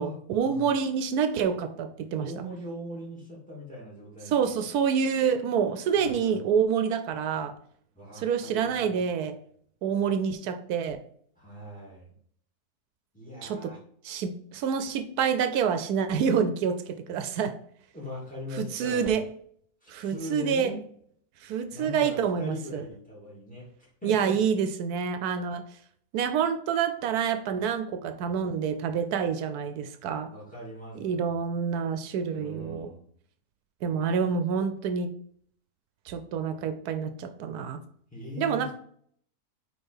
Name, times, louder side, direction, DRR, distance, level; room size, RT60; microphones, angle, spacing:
voice 1, 0.0-2.3 4.3-7.5 8.1-9.4 9.8-11.0 13.4-13.7 14.0-17.6 18.5-19.3 19.9-20.7 21.4-22.8 24.0-25.6 26.1-30.3 31.0-32.9 33.8-35.1 36.1-37.8 38.4-38.7, right 7 dB, 80° right, 10 dB, 1.1 m, -27 dB
voice 2, 2.2-4.6 5.9-6.4 7.9-9.0 11.4-12.1 13.1-13.8 17.9-19.2 19.8-20.8 21.7-23.7 24.0-24.4 30.3-31.4 32.3-33.1 38.1-38.7, left 1 dB, 5° left, -4 dB, 2.7 m, -40 dB
5.2 x 4.7 x 4.3 m, 0.62 s
omnidirectional pair, 1.6 m